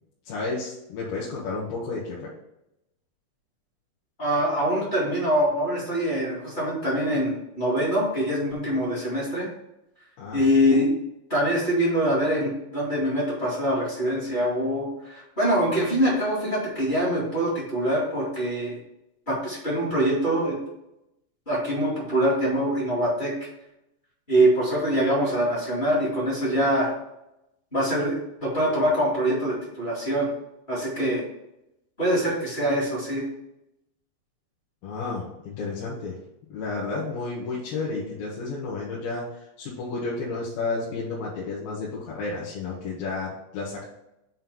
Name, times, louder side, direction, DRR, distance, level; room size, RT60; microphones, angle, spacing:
voice 1, 0.3-2.3 10.2-10.4 34.8-36.2 36.5-43.8, left 3 dB, 65° left, -6 dB, 2.6 m, -32 dB
voice 2, 4.2-9.5 10.3-10.9 11.3-18.8 19.3-20.6 21.4-23.3 24.3-26.9 27.7-30.3 30.7-31.2 32.0-33.2, equal, 25° left, -8 dB, 1.1 m, -24 dB
7.7 x 3.3 x 5.5 m, 0.85 s
omnidirectional pair, 5.2 m